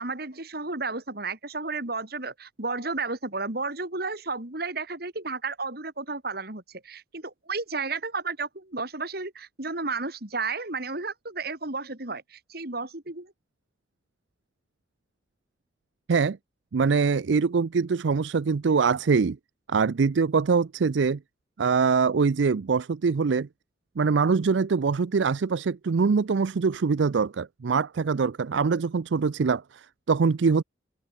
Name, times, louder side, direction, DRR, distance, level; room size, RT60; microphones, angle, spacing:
voice 1, 0.0-13.3, right 3 dB, 55° right, 2.9 m, -32 dB
voice 2, 16.7-19.4 19.7-21.2 21.6-23.5 24.0-30.6, right 5 dB, 75° right, 0.5 m, -23 dB
open air
head